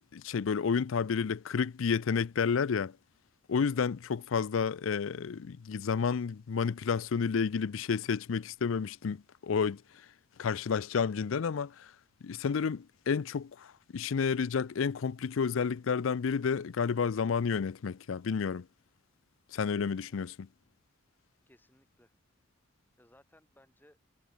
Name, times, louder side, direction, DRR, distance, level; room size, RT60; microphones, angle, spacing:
voice 1, 0.1-2.9 3.5-9.8 10.4-11.9 12.2-18.7 19.5-20.3, left 6 dB, 75° left, 0.5 m, -30 dB
voice 2, 21.5-22.2 23.0-24.0, left 1 dB, 10° left, 6.5 m, -63 dB
head